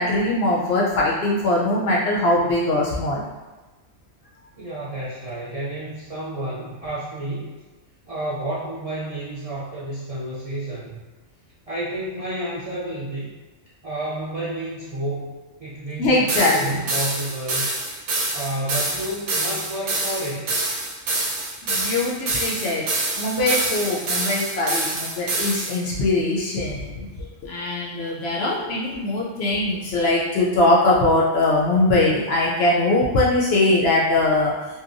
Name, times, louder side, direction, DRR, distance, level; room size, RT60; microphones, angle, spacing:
voice 1, 0.0-3.2 16.0-16.8 21.6-22.9 23.2-27.1 27.4-34.5, left 2 dB, 65° left, -4 dB, 0.8 m, -21 dB
voice 2, 4.6-7.6 8.1-11.0 11.7-13.3 13.8-17.7 18.3-20.6, right 1 dB, 45° right, -10 dB, 0.5 m, -30 dB
sound 1, 16.3-25.8, right 2 dB, 70° right, 0.9 m, -26 dB
2.8 x 2.2 x 2.5 m, 1.2 s
omnidirectional pair, 1.3 m